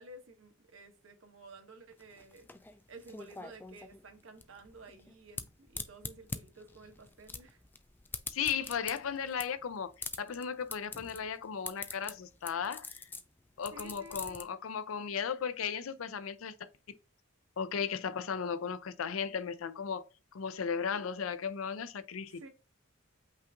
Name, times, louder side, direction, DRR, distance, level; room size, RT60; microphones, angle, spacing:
voice 1, 0.0-2.5 2.9-7.6 13.7-14.4 22.3-22.5, right 2 dB, 70° right, 1.1 m, -53 dB
sound 1, 1.9-14.4, left 3 dB, 10° left, 0.3 m, -44 dB
voice 2, 8.3-13.0 13.6-16.5 17.6-22.5, left 7 dB, 80° left, 0.5 m, -36 dB
5.5 x 2.5 x 3.5 m
head